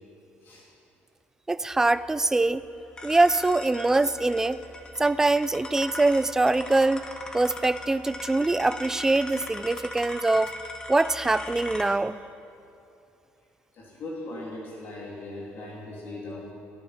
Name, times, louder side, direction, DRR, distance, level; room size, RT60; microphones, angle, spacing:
voice 1, 1.5-2.6 3.0-4.6 5.0-7.1 7.3-10.5 10.9-12.2, right 2 dB, 10° right, 16 dB, 0.3 m, -23 dB
sound 1, 1.7-11.8, left 2 dB, 20° left, 1.4 m, -40 dB
voice 2, 13.7-16.5, left 2 dB, 55° left, -4 dB, 3.0 m, -39 dB
19.5 x 14.0 x 4.4 m, 2.7 s
cardioid pair, 145°, 4 cm